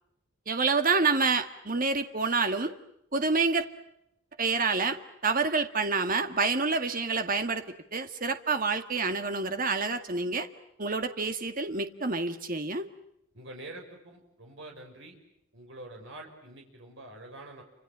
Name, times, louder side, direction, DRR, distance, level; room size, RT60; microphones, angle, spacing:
voice 1, 0.5-2.7 3.1-3.7 4.4-7.6 7.9-10.5 10.8-12.9, right 4 dB, 45° right, 8 dB, 1.9 m, -28 dB
voice 2, 13.3-15.2 15.5-17.6, right 1 dB, 60° right, 2 dB, 6.3 m, -46 dB
29.5 x 26.5 x 7.5 m, 0.81 s
head